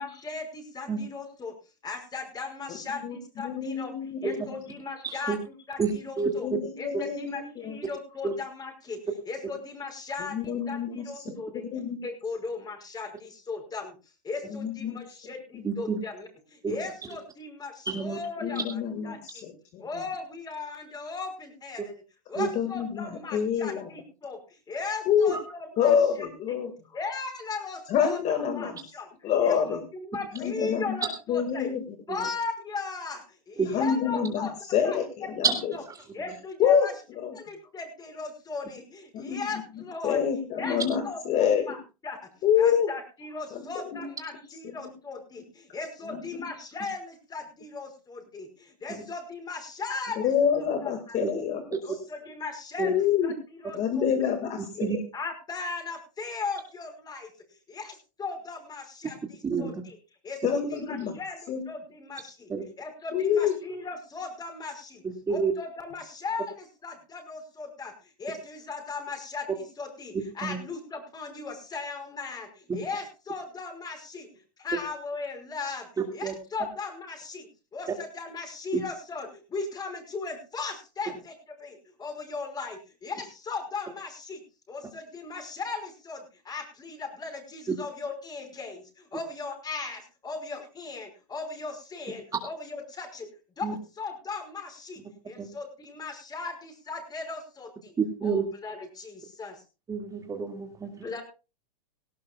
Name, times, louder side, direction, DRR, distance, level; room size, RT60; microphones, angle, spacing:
voice 1, 0.0-1.5 1.8-3.9 4.2-5.4 5.7-6.5 6.8-9.0 9.3-11.6 12.0-14.0 14.2-18.6 19.0-19.5 19.8-22.0 22.3-26.6 26.9-29.1 29.4-31.7 32.1-35.3 35.7-35.8 36.1-36.9 37.3-40.2 40.6-40.8 41.0-41.8 42.0-51.2 51.8-54.1 55.1-57.3 57.7-60.0 60.2-62.5 62.8-65.0 65.3-74.3 74.6-75.9 76.1-77.5 77.7-84.4 84.7-93.3 93.6-97.9 98.2-99.6 101.0-101.2, left 4 dB, 20° left, 5 dB, 5.4 m, -37 dB
voice 2, 3.4-4.3 6.4-7.8 10.3-12.0 14.6-15.0 15.5-15.6 18.4-19.9 22.4-23.9 25.1-25.3 25.8-26.7 27.9-28.8 29.2-29.8 30.3-30.8 31.3-31.8 33.7-35.5 36.6-36.9 37.2-37.3 39.1-39.5 40.0-41.7 42.4-42.9 43.5-43.7 43.9-44.0 46.1-46.2 50.2-51.6 52.8-53.3 53.7-54.9 60.4-61.1 61.5-61.6 63.1-63.5, left 8 dB, 35° left, 7 dB, 2.0 m, -26 dB
voice 3, 5.0-5.4 5.8-5.9 6.2-6.3 8.2-8.3 15.6-16.0 16.6-16.8 17.9-18.2 22.4-22.5 25.3-25.4 32.1-32.2 33.6-33.7 35.4-35.5 51.2-51.3 52.8-52.9 54.8-55.0 59.4-59.7 62.5-62.6 65.0-65.5 70.4-70.6 76.2-76.3 78.7-78.8 93.6-93.7 95.4-95.5 98.0-98.4 99.9-100.9, right 5 dB, 15° right, 3 dB, 2.2 m, -28 dB
18.0 x 17.5 x 2.4 m, 0.32 s
hypercardioid pair, 115°, 20 cm